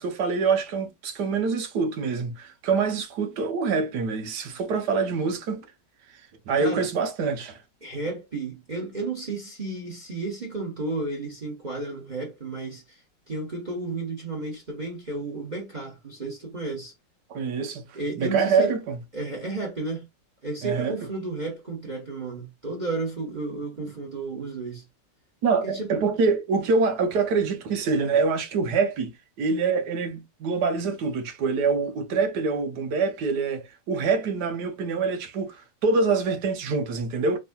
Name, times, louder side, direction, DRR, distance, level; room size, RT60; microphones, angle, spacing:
voice 1, 0.0-5.6 6.5-7.6 17.3-19.0 20.6-20.9 25.4-29.1 29.4-37.4, right 4 dB, 65° right, 1.3 m, -25 dB
voice 2, 7.8-13.0 13.3-16.9 17.9-18.7 19.1-20.1 20.4-24.8 25.6-26.0, right 3 dB, 25° right, 1.2 m, -32 dB
4.1 x 3.7 x 2.2 m
omnidirectional pair, 2.0 m